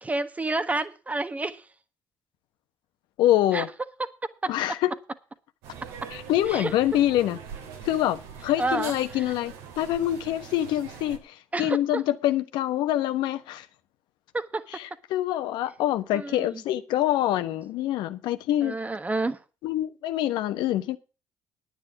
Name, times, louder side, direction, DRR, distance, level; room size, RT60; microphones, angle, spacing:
voice 1, 0.0-1.6 3.5-3.6 4.4-4.5 6.5-6.7 8.6-8.9 11.5-12.0 14.3-14.6 16.1-16.6 18.6-19.4, right 2 dB, 20° right, 1.3 m, -29 dB
voice 2, 3.2-3.7 4.5-5.0 6.1-7.4 7.8-13.7 14.7-18.8 19.6-21.0, left 13 dB, 75° left, 1.2 m, -25 dB
sound 1, 5.6-11.2, right 6 dB, 85° right, 2.9 m, -42 dB
9.8 x 9.8 x 5.9 m
supercardioid pair, 80°, 8 cm